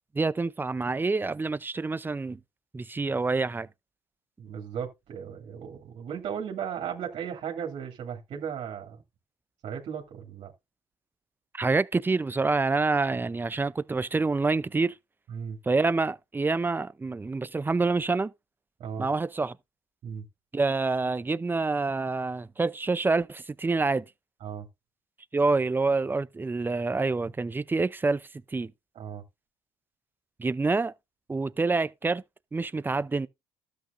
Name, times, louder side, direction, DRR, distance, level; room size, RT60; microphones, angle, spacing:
voice 1, 0.1-2.4 2.7-3.7 11.5-14.9 15.7-18.3 19.0-19.6 20.5-24.0 25.3-28.7 30.4-30.9 31.3-32.2 32.5-33.3, right 3 dB, 20° right, 0.6 m, -27 dB
voice 2, 4.4-9.0 9.6-10.5 15.3-15.6 18.8-19.1 20.0-20.2 24.4-24.7 28.9-29.2, right 8 dB, 60° right, 2.6 m, -36 dB
12.5 x 8.2 x 2.6 m
supercardioid pair, 80°, 11 cm